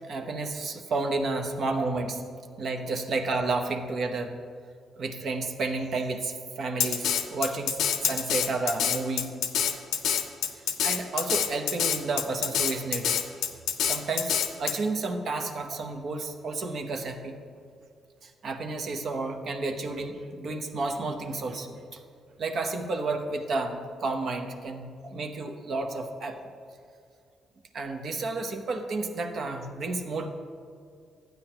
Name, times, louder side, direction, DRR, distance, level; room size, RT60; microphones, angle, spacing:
voice 1, 0.1-2.2 2.6-4.3 5.0-9.3 10.6-13.2 13.8-17.4 18.2-22.0 22.4-26.4 27.7-30.3, right 3 dB, 60° right, 5 dB, 0.8 m, -31 dB
Drum kit, 6.8-14.7, left 8 dB, 85° left, 0.6 m, -26 dB
12.0 x 9.0 x 2.9 m, 2.3 s
cardioid pair, 90°, 0 cm